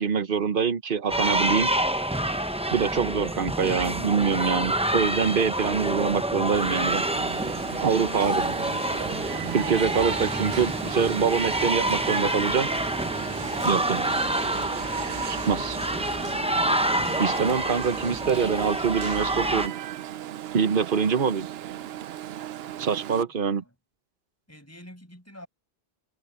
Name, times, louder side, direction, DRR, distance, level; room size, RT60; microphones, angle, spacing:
voice 1, 0.0-1.7 2.7-7.0 7.8-8.5 9.5-12.7 13.6-14.1 15.3-15.8 17.2-19.7 20.5-21.5 22.8-23.6, right 6 dB, 60° right, 1.2 m, -25 dB
sound 1, 1.1-19.7, right 1 dB, 5° right, 0.8 m, -27 dB
Alarm, 6.5-23.2, right 12 dB, 80° right, 0.8 m, -36 dB
voice 2, 15.3-16.4 22.6-23.0 23.3-23.8 24.5-25.5, left 1 dB, 15° left, 6.3 m, -50 dB
omnidirectional pair, 1.0 m